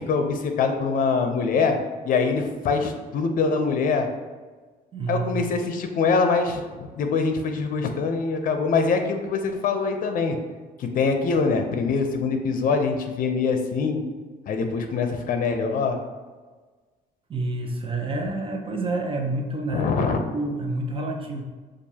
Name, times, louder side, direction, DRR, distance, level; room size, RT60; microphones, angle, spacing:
voice 1, 0.0-1.8 2.0-4.1 5.1-10.4 10.8-14.0 14.5-16.0 19.7-20.2, left 4 dB, 55° left, 6 dB, 0.7 m, -24 dB
voice 2, 4.9-5.4 17.3-21.4, right 2 dB, 30° right, 2 dB, 0.8 m, -28 dB
6.6 x 2.5 x 2.8 m, 1.4 s
cardioid pair, 110°, 17 cm